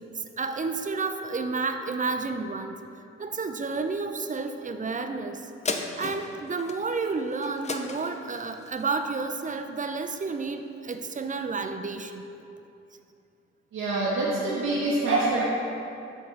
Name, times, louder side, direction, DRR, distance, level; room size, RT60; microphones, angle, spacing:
voice 1, 0.1-2.8 3.2-5.5 6.0-12.2, right 4 dB, 25° right, 7 dB, 0.5 m, -31 dB
sound 1, 5.6-10.4 10.9-11.0, left 3 dB, 20° left, 0.6 m, -37 dB
voice 2, 13.7-15.4, right 2 dB, 65° right, -5 dB, 1.0 m, -25 dB
7.0 x 3.6 x 4.5 m, 2.7 s
hypercardioid pair, 40°, 32 cm